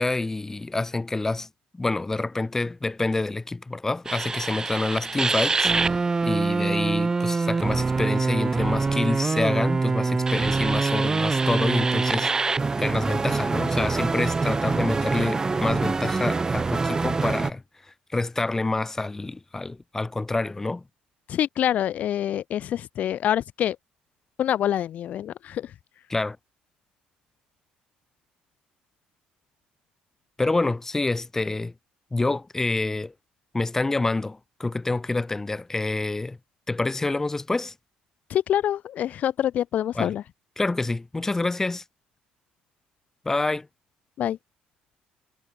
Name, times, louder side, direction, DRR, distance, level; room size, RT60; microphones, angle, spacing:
voice 1, 0.0-1.5 1.7-12.5 12.8-17.6 18.1-20.8 26.1-26.4 30.4-31.7 32.1-33.1 33.5-36.4 36.7-37.7 39.9-40.1 40.6-41.8 43.2-43.7, left 2 dB, 15° left, 1.7 m, -27 dB
sound 1, 4.1-17.5, right 4 dB, 20° right, 1.5 m, -24 dB
voice 2, 21.3-23.8 24.4-25.7 38.3-40.2 44.2-44.4, left 11 dB, 55° left, 0.7 m, -26 dB
cardioid pair, 110°, 3 cm